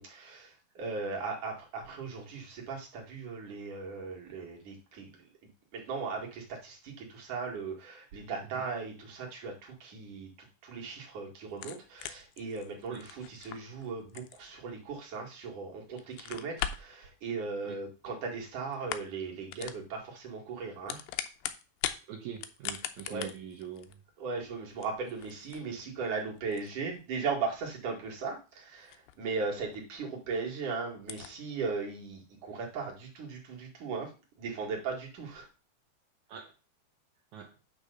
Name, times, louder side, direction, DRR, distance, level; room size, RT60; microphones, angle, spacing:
voice 1, 0.0-5.2 5.7-21.0 23.1-23.3 24.2-34.1 34.4-35.5, right 4 dB, 55° right, -1 dB, 3.2 m, -38 dB
sound 1, 11.5-15.5 15.9-17.0 18.0-18.5 18.7-19.2 19.5-19.8 20.6-22.0 22.3-29.4 29.7-29.8 30.3-30.4 30.5-30.6 31.0-31.3, left 11 dB, 80° left, 2.3 m, -41 dB
voice 2, 22.1-24.0 36.3-36.5 37.3-37.5, right 9 dB, 70° right, 4 dB, 1.8 m, -43 dB
9.1 x 3.5 x 6.7 m, 0.33 s
omnidirectional pair, 4.6 m